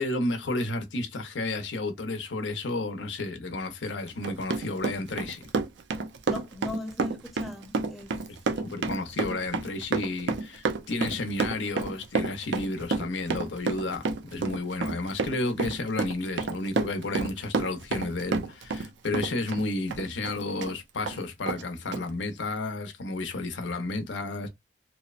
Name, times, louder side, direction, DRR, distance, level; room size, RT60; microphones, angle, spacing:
voice 1, 0.0-5.4 8.6-24.5, left 2 dB, 80° left, 0.7 m, -32 dB
Run, 4.1-18.9 19.1-20.7 21.1-21.2 21.5-21.6 21.9-22.0, right 4 dB, 70° right, 0.4 m, -29 dB
voice 2, 6.3-8.3, left 2 dB, ahead, 0.6 m, -39 dB
2.8 x 2.0 x 2.4 m
head